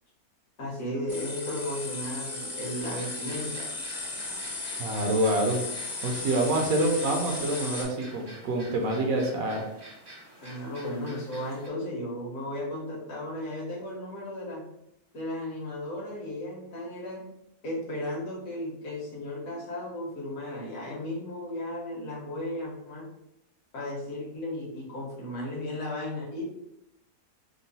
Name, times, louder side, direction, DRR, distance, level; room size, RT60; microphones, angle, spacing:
voice 1, 0.6-3.7 10.4-14.6 15.1-17.2 17.6-23.1 23.7-26.5, left 1 dB, 60° left, -4 dB, 1.4 m, -35 dB
sound 1, 1.1-7.8, left 3 dB, 35° left, 0.7 m, -36 dB
sound 2, 2.8-11.7, right 1 dB, 40° right, 0.3 m, -48 dB
voice 2, 4.8-5.6 6.0-9.6, right 1 dB, 70° right, 2 dB, 1.0 m, -26 dB
3.7 x 2.0 x 4.0 m, 0.83 s
omnidirectional pair, 1.6 m